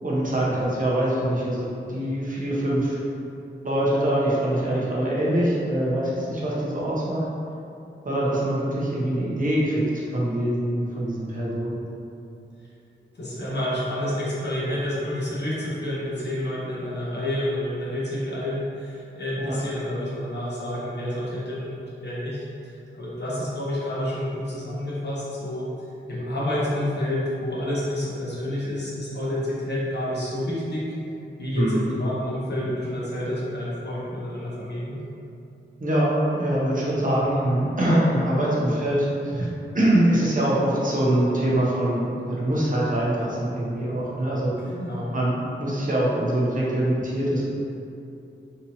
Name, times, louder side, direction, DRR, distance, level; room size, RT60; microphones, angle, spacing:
voice 1, 0.0-3.0 3.6-7.2 8.0-9.8 10.1-11.8 19.4-19.6 31.5-31.8 35.8-39.5 39.7-44.5 45.1-45.3 45.6-47.5, right 1 dB, 40° right, -6 dB, 0.8 m, -23 dB
voice 2, 13.1-25.7 26.1-30.9 31.4-35.0 44.6-45.2, left 1 dB, 55° left, -7 dB, 1.0 m, -29 dB
4.0 x 2.7 x 2.7 m, 2.6 s
wide cardioid pair, 90°, 21 cm